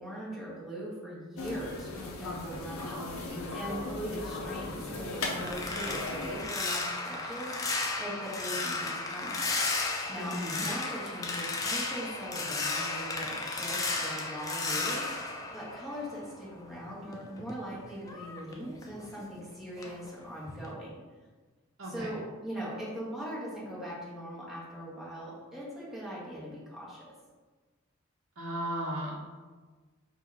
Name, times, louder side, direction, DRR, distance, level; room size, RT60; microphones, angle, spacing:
voice 1, 0.0-9.4 10.1-20.9 21.9-27.0, equal, ahead, -8 dB, 1.2 m, -40 dB
sound 1, 1.4-6.5, left 2 dB, 85° left, 0.7 m, -37 dB
sound 2, 5.0-16.4 16.8-19.4 19.8-20.1 20.5-20.7, left 3 dB, 15° left, 0.4 m, -34 dB
voice 2, 10.2-10.7 21.8-22.1 28.4-29.1, equal, 65° right, -6 dB, 0.8 m, -35 dB
3.9 x 2.5 x 4.6 m, 1.4 s
head